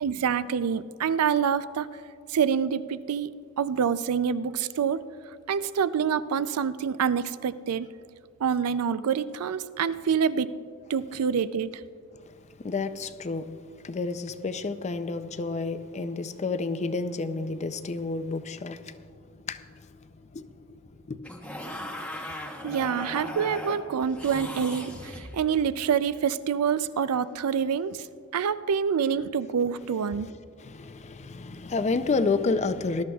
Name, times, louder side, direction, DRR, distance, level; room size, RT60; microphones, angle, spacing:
voice 1, 0.0-1.9 2.3-3.3 3.6-5.0 5.5-7.9 8.4-10.6 10.9-11.7 22.6-28.1 28.3-30.3, right 7 dB, 85° right, 15 dB, 0.4 m, -26 dB
voice 2, 12.3-13.5 13.8-21.2 30.1-30.3 30.6-33.0, left 3 dB, 30° left, 11 dB, 0.5 m, -31 dB
sound 1, 21.2-25.7 27.9-28.1, left 1 dB, 5° left, 0.9 m, -38 dB
20.0 x 12.5 x 2.3 m, 2.3 s
head